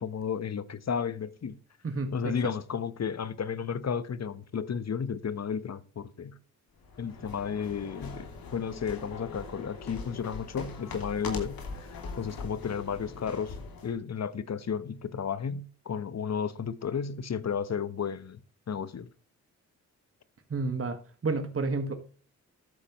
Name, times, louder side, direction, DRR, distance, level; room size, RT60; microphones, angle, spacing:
voice 1, 0.0-1.6 2.1-6.4 7.0-18.4 18.7-19.1, left 7 dB, 45° left, 1.1 m, -33 dB
voice 2, 1.8-2.4 20.5-21.9, right 3 dB, 40° right, 1.8 m, -31 dB
sound 1, 6.8-14.0, left 4 dB, 70° left, 2.9 m, -41 dB
13.5 x 8.3 x 3.1 m
supercardioid pair, 45°, 36 cm